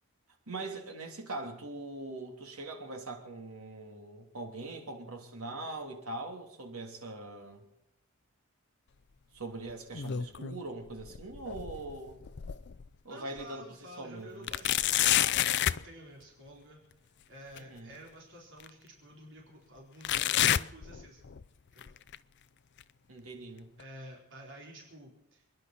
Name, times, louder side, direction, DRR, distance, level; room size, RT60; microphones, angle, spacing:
voice 1, 0.5-7.6 9.3-12.2 13.0-14.5 17.5-17.9 23.1-23.7, right 2 dB, 75° right, 2 dB, 3.2 m, -42 dB
sound 1, 9.7-10.6 11.0-12.9 13.4-13.5 14.5-15.9 17.6-17.7 18.6-18.7 20.0-21.4 21.8-22.2 22.8-22.9 23.8-23.9, left 11 dB, 50° left, 0.5 m, -29 dB
voice 2, 13.1-16.8 17.3-21.2 21.7-21.9 23.8-25.4, right 1 dB, 55° right, -2 dB, 4.1 m, -51 dB
29.0 x 11.0 x 4.3 m, 0.88 s
head